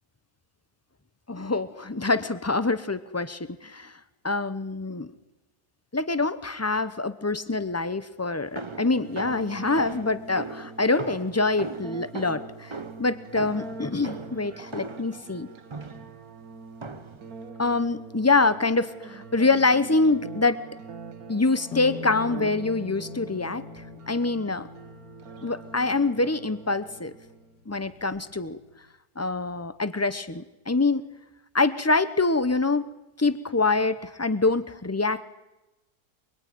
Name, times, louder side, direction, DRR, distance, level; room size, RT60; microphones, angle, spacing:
voice 1, 1.3-3.9 4.2-5.1 5.9-12.7 13.0-15.5 17.6-20.6 21.3-23.7 24.1-24.7 25.4-27.1 27.7-28.6 29.2-31.1 31.5-32.9 33.2-35.2, left 3 dB, 20° left, 13 dB, 0.4 m, -25 dB
sound 1, 8.6-15.2 15.7-16.2 16.8-17.3, right 3 dB, 20° right, 0.8 m, -39 dB
sound 2, 8.6-27.6, right 5 dB, 60° right, 1.6 m, -44 dB
Savarez-ESaite, 21.7-27.3 27.8-28.7, left 9 dB, 85° left, 1.9 m, -42 dB
23.5 x 23.5 x 9.3 m, 1.0 s
omnidirectional pair, 1.8 m